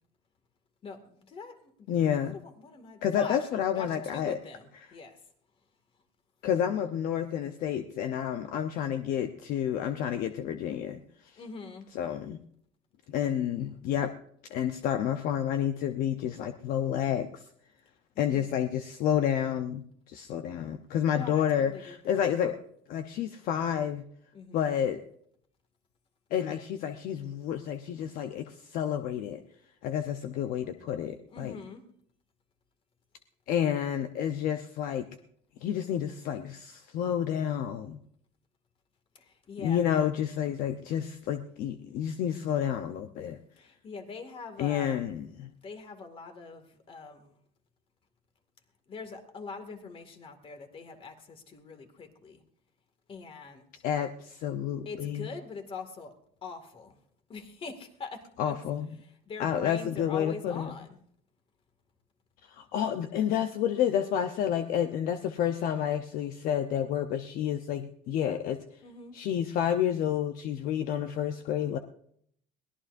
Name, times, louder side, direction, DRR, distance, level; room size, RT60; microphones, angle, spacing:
voice 1, 0.8-1.9 2.2-5.2 11.4-11.9 18.3-18.5 21.1-22.2 24.3-24.8 31.3-31.8 39.1-39.8 43.6-45.0 45.6-47.4 48.9-52.4 53.1-53.8 54.8-56.1 56.4-57.0 57.3-58.6 59.0-61.0 68.8-69.2, left 4 dB, 35° left, 7 dB, 2.2 m, -43 dB
voice 2, 1.9-2.4 3.0-4.4 6.4-11.4 11.9-12.4 13.1-14.1 14.5-17.4 18.2-22.6 22.9-24.0 24.5-25.0 26.3-29.4 29.8-31.6 33.5-35.1 35.6-38.0 39.6-43.4 44.6-45.5 53.8-55.3 58.4-58.9 59.4-60.7 62.4-68.6 69.1-71.8, left 9 dB, 60° left, 7 dB, 0.9 m, -30 dB
22.5 x 17.5 x 2.7 m, 0.66 s
cardioid pair, 125°, 17 cm